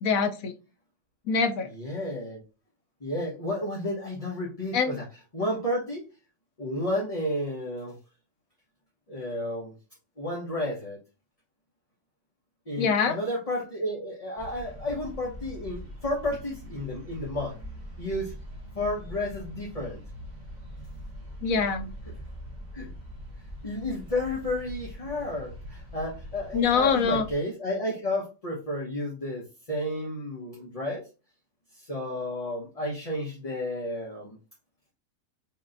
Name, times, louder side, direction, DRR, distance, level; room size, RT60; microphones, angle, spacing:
voice 1, 0.0-0.5 1.3-1.7 4.7-5.0 12.8-13.2 21.4-21.9 26.5-27.2, left 5 dB, 70° left, 7 dB, 1.0 m, -24 dB
voice 2, 1.7-2.4 3.0-5.0 5.3-6.0 6.6-7.9 9.1-9.7 10.2-11.0 12.7-17.6 18.0-18.3 18.7-20.0 22.7-22.9 23.6-31.0 31.7-34.4, left 1 dB, 25° left, -4 dB, 1.2 m, -32 dB
sound 1, 14.4-27.3, equal, 30° right, 1.3 m, -42 dB
5.8 x 3.1 x 2.6 m, 0.31 s
omnidirectional pair, 1.7 m